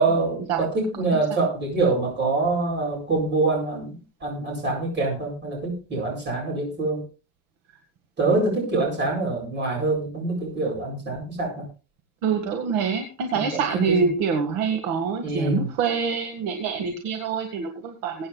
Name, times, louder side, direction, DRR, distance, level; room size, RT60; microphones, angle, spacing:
voice 1, 0.0-7.0 8.2-11.6 13.3-13.6 13.9-14.1 15.2-15.7, right 3 dB, 25° right, 0 dB, 8.0 m, -25 dB
voice 2, 12.2-18.3, right 6 dB, 55° right, 4 dB, 1.9 m, -25 dB
22.0 x 9.3 x 2.4 m, 0.33 s
cardioid pair, 155°, 39 cm